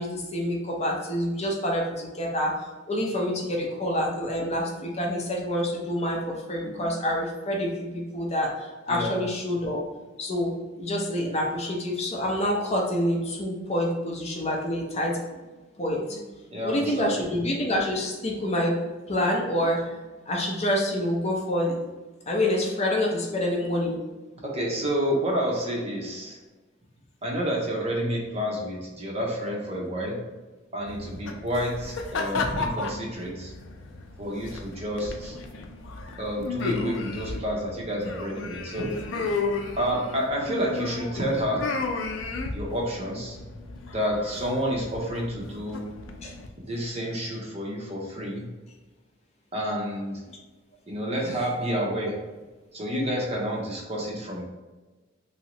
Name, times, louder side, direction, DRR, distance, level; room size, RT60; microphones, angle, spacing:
voice 1, 0.0-9.8 10.2-10.5 10.8-15.4 15.8-16.2 16.6-18.8 19.1-21.8 22.3-24.0 32.9-33.0 38.0-38.1 46.2-46.3 50.3-50.4, left 1 dB, 35° left, -1 dB, 0.6 m, -27 dB
voice 2, 16.5-17.1 24.4-26.4 27.2-30.2 30.7-33.5 34.2-35.3 36.2-39.0 39.8-41.7 42.5-43.4 43.9-45.9 46.6-48.4 49.5-50.2 50.9-52.2 52.7-54.4, equal, 35° right, -2 dB, 0.7 m, -29 dB
sound 1, 30.9-46.5, left 3 dB, 85° left, 0.4 m, -34 dB
3.0 x 2.7 x 2.9 m, 1.2 s
head